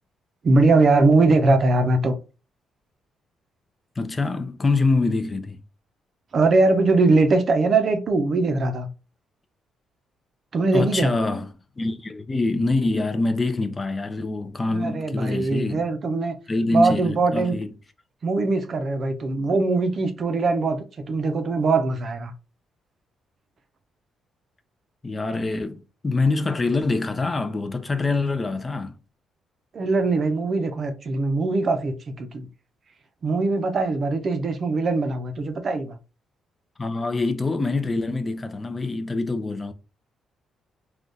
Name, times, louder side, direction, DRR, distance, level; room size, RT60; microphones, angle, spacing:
voice 1, 0.4-2.1 6.3-8.9 10.5-11.1 14.7-16.4 16.7-17.6 18.2-22.3 29.7-32.5 33.2-36.0, right 3 dB, 50° right, 0.6 m, -21 dB
voice 2, 4.0-5.6 10.7-11.5 11.8-15.8 16.5-17.7 25.0-28.9 36.8-39.7, left 3 dB, 25° left, 0.5 m, -25 dB
3.5 x 2.3 x 2.6 m
cardioid pair, 90°, 0 cm